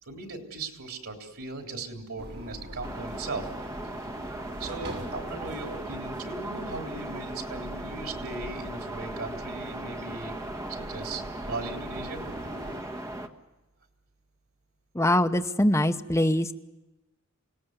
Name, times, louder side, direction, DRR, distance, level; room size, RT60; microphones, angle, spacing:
voice 1, 0.0-3.5 4.6-10.4 10.9-12.2, right 3 dB, 90° right, 3 dB, 3.5 m, -38 dB
sound 1, 2.2-12.8, right 1 dB, 50° right, 4.1 m, -43 dB
sound 2, 2.8-13.3, right 1 dB, 15° right, 1.4 m, -38 dB
voice 2, 14.9-16.5, left 1 dB, 15° left, 6 dB, 0.9 m, -23 dB
27.5 x 18.0 x 8.0 m, 1.1 s
head